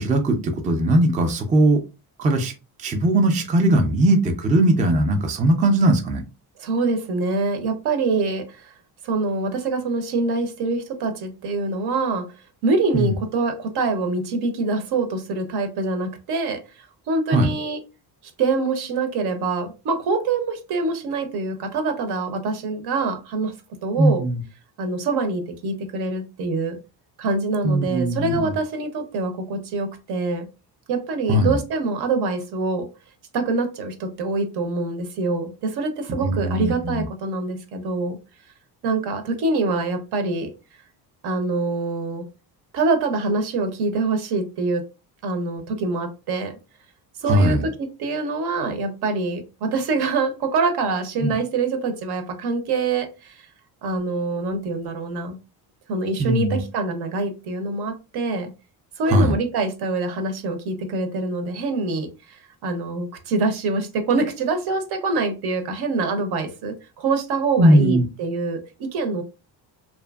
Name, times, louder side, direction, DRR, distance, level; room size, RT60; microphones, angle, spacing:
voice 1, 0.0-1.8 2.2-2.5 2.8-6.2 12.9-13.2 17.3-17.5 24.0-24.4 27.6-28.5 31.3-31.6 36.2-37.1 47.3-47.6 51.2-51.3 56.2-56.6 59.1-59.3 67.6-68.0, right 1 dB, 20° right, 0.4 m, -19 dB
voice 2, 6.6-8.7 9.0-12.3 12.6-17.8 18.4-23.5 23.8-24.2 24.8-26.8 27.2-30.5 30.9-32.9 33.3-38.2 38.8-40.5 41.2-42.2 42.7-44.8 45.2-46.5 47.2-53.5 53.8-55.4 55.9-58.5 59.0-69.2, right 3 dB, 70° right, 0.7 m, -25 dB
2.6 x 2.5 x 2.3 m
cardioid pair, 120°, 41 cm